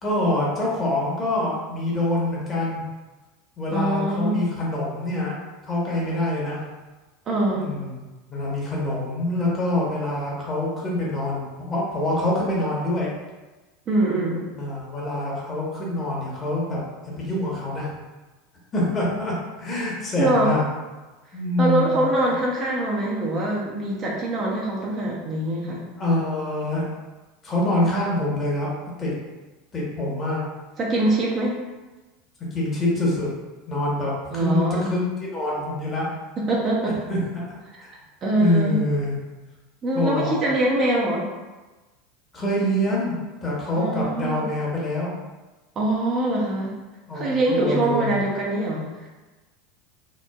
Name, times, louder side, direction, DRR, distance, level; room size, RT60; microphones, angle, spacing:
voice 1, 0.0-2.8 3.6-5.3 5.7-6.6 7.5-13.1 14.5-16.8 17.2-17.9 18.7-20.6 21.3-22.1 26.0-26.8 27.4-28.7 29.0-29.1 29.7-30.4 32.5-33.3 33.7-36.1 36.8-37.4 37.8-37.9 38.4-39.2 39.9-40.5 42.3-45.1 47.1-48.2, left 1 dB, 30° left, -4 dB, 1.0 m, -25 dB
voice 2, 3.7-4.5 7.3-7.7 13.9-14.5 20.2-20.5 21.6-25.8 30.8-31.6 34.3-34.9 36.4-37.0 38.2-38.8 39.8-41.3 43.7-44.4 45.8-46.8 47.1-49.1, right 1 dB, 40° right, -3 dB, 0.6 m, -23 dB
2.9 x 2.1 x 2.3 m, 1.2 s
hypercardioid pair, 85°, 0 cm